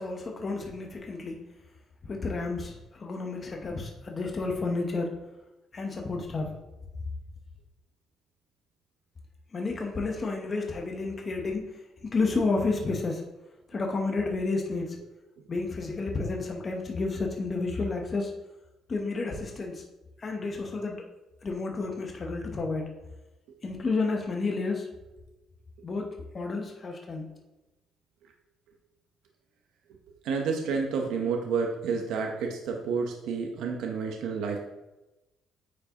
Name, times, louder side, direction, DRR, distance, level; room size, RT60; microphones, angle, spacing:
voice 1, 0.0-1.4 2.0-5.1 5.7-6.5 9.5-13.2 13.7-15.0 15.5-18.3 18.9-19.9 20.2-21.0 21.4-22.8 23.6-24.9 25.8-27.3, left 3 dB, 25° left, 1 dB, 0.8 m, -31 dB
voice 2, 30.2-34.6, right 5 dB, 90° right, 2 dB, 0.8 m, -30 dB
9.3 x 4.6 x 2.9 m, 0.99 s
cardioid pair, 170°, 0 cm